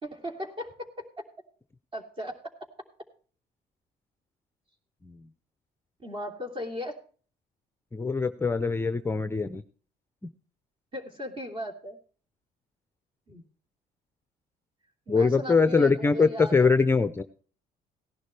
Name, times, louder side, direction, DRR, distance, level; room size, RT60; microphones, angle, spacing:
voice 1, 0.0-1.2 1.9-2.5 6.0-7.0 10.9-12.0 13.3-13.4 15.1-16.8, left 1 dB, 30° right, 4 dB, 3.0 m, -37 dB
voice 2, 7.9-9.6 15.1-17.2, left 4 dB, 15° left, 11 dB, 0.6 m, -23 dB
17.5 x 11.5 x 3.3 m, 0.42 s
cardioid pair, 110°, 17 cm